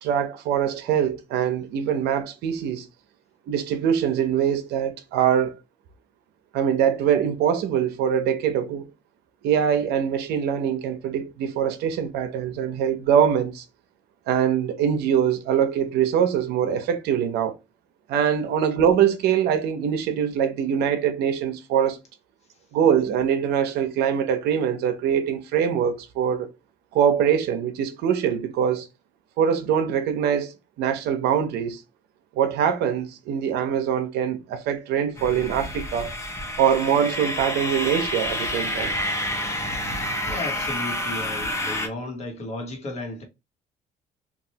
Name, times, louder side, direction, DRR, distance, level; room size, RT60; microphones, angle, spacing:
voice 1, 0.0-2.9 3.5-5.6 6.5-8.9 9.4-13.6 14.3-17.6 18.1-22.0 22.7-26.5 26.9-28.9 29.4-30.5 30.8-31.8 32.4-36.1 36.6-38.9, right 8 dB, 80° right, 0.6 m, -23 dB
sound 1, 35.2-41.9, left 1 dB, 15° left, 0.7 m, -29 dB
voice 2, 40.3-43.2, left 2 dB, 40° left, 1.1 m, -34 dB
3.1 x 2.4 x 2.8 m
cardioid pair, 110°, 17 cm